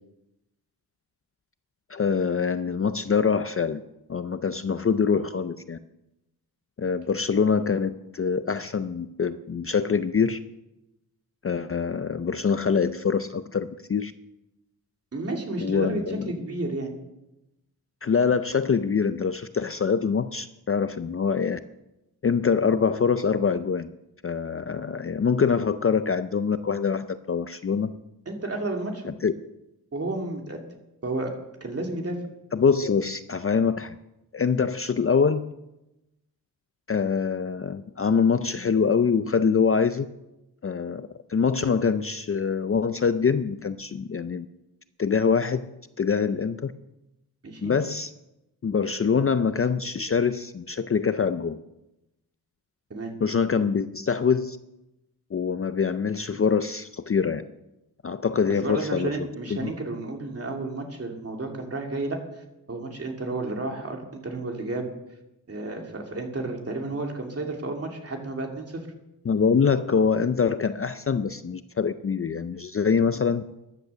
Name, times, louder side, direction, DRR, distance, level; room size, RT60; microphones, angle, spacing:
voice 1, 1.9-3.8 4.1-5.8 6.8-10.4 11.4-14.1 15.6-16.3 18.0-21.6 22.2-23.9 24.2-27.9 29.0-29.3 32.5-34.0 34.3-35.5 36.9-40.1 40.6-44.5 45.0-45.7 46.0-46.7 47.6-48.1 48.6-51.6 53.2-54.6 55.3-57.4 58.0-59.1 59.6-59.7 69.3-73.4, left 6 dB, 35° left, 11 dB, 0.4 m, -24 dB
voice 2, 15.1-16.9 28.3-29.1 29.9-30.6 31.0-31.3 31.6-32.2 47.4-47.7 52.9-53.1 58.6-62.2 62.7-64.8 65.5-68.9, right 2 dB, 35° right, 1 dB, 2.5 m, -31 dB
14.5 x 10.5 x 6.6 m, 0.92 s
wide cardioid pair, 175°, 39 cm